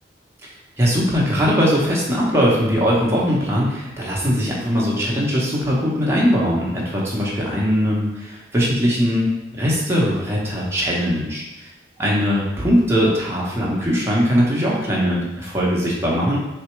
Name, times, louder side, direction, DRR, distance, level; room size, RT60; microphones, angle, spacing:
voice 1, 0.8-9.2 9.5-11.4 12.0-16.4, equal, 15° right, -5 dB, 0.9 m, -20 dB
4.2 x 3.3 x 3.1 m, 1.1 s
head